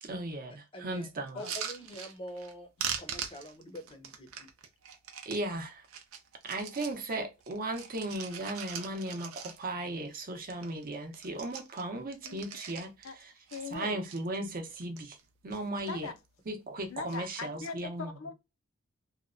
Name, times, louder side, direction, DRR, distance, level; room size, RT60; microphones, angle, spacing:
voice 1, 0.0-1.4 5.3-5.8 6.4-12.9 13.7-15.2 15.4-16.1 16.5-18.1, right 1 dB, 45° right, 0.7 m, -36 dB
voice 2, 0.7-1.1 1.3-2.7 3.0-4.5, equal, 25° left, 0.6 m, -45 dB
sound 1, 1.3-2.5 2.8-5.4 5.8-7.0 7.4-9.9 10.2-10.3 10.5-10.8 11.1-13.1 13.5-14.2 14.7-15.2 15.5-16.1 16.9-17.2, right 8 dB, 85° right, 0.6 m, -41 dB
voice 3, 13.5-14.0 15.9-16.1 16.9-18.3, left 4 dB, 75° left, 0.5 m, -40 dB
2.8 x 2.1 x 2.4 m
head